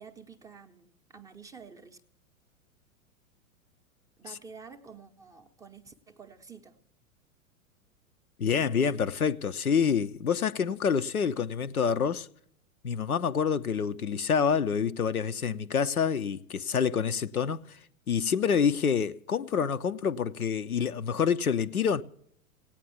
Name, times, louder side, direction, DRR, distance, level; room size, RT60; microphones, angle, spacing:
voice 1, 0.0-2.0 4.2-6.8, right 5 dB, 10° right, 0.6 m, -49 dB
voice 2, 8.4-12.3 12.8-17.8 18.1-22.0, left 6 dB, 90° left, 0.6 m, -27 dB
16.5 x 9.0 x 7.0 m
figure-of-eight pair, 100°, 42 cm